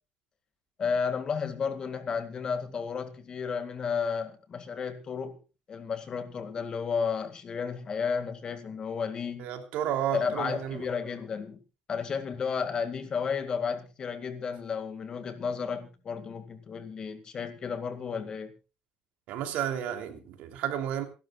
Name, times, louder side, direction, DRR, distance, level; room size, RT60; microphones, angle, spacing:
voice 1, 0.8-5.4 5.7-9.5 10.1-11.6 11.9-18.5, left 6 dB, 30° left, 2.1 m, -32 dB
voice 2, 9.4-10.9 19.3-21.0, right 10 dB, 75° right, 3.0 m, -32 dB
27.5 x 11.5 x 2.4 m
cardioid pair, 155°, 3 cm